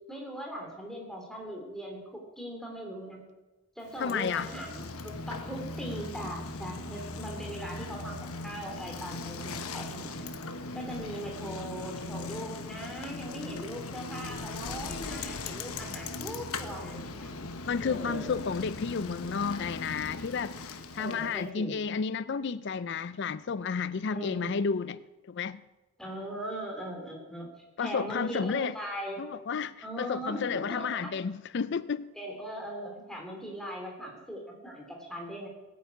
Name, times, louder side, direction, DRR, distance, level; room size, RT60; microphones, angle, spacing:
voice 1, 0.1-3.2 3.7-10.3 10.7-17.3 17.8-18.4 20.9-21.8 24.1-24.5 26.0-27.5 27.8-29.3 29.8-31.1 32.1-35.5, equal, ahead, 3.2 m, -40 dB
Bicycle, 3.9-21.4, left 3 dB, 80° left, 1.2 m, -39 dB
voice 2, 4.0-4.5 17.7-25.0 25.3-25.6 27.8-28.8 29.2-32.1, left 5 dB, 50° left, 0.4 m, -32 dB
18.0 x 9.5 x 8.4 m
head